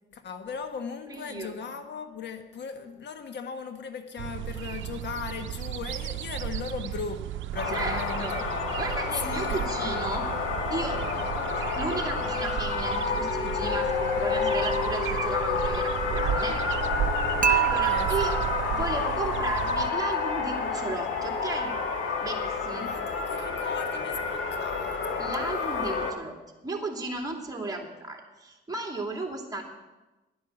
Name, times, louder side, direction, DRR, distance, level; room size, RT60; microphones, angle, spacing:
voice 1, 0.1-7.2 7.5-8.4 9.2-9.6 17.9-18.1 22.8-25.2, left 6 dB, 60° left, 7 dB, 1.5 m, -38 dB
voice 2, 1.1-1.5 7.7-8.4 8.8-10.3 10.7-11.0 11.4-16.6 17.5-18.4 18.7-21.7 22.2-22.9 25.2-26.4 26.6-29.6, right 2 dB, 20° right, 1 dB, 2.7 m, -35 dB
sound 1, 4.2-19.9, right 12 dB, 75° right, 0.6 m, -35 dB
sound 2, 7.6-26.1, left 4 dB, 75° left, 1.9 m, -29 dB
Dishes pots and pans / Chink clink, 17.4-19.5, right 10 dB, 40° right, 0.8 m, -27 dB
11.0 x 10.0 x 7.3 m, 1.1 s
cardioid pair, 90°, 20 cm